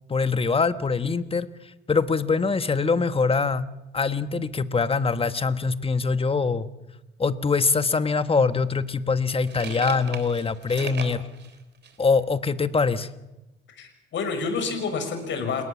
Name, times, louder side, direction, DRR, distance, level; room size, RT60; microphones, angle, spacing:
voice 1, 0.1-1.5 1.9-3.7 3.9-6.7 7.2-11.3 12.0-13.1, left 4 dB, 30° left, 12 dB, 1.3 m, -23 dB
sound 1, 8.1-8.2 8.9-12.1, right 6 dB, 60° right, 3.6 m, -38 dB
voice 2, 13.7-15.6, left 4 dB, 70° left, 6 dB, 6.4 m, -29 dB
29.0 x 18.5 x 7.2 m, 0.99 s
cardioid pair, 90°, 20 cm